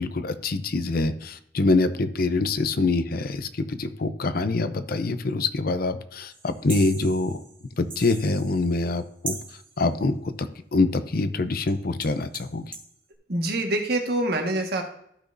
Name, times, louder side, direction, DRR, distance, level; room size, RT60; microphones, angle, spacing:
voice 1, 0.0-7.4 7.8-9.4 9.8-10.3 10.7-12.7, left 3 dB, 55° left, 11 dB, 0.6 m, -25 dB
sound 1, 6.3-9.0 9.3-9.8 11.7-11.8 12.0-12.9, right 4 dB, 30° right, 1.9 m, -40 dB
voice 2, 13.3-14.8, right 1 dB, 65° right, 3 dB, 1.6 m, -25 dB
13.5 x 6.1 x 2.6 m, 0.72 s
head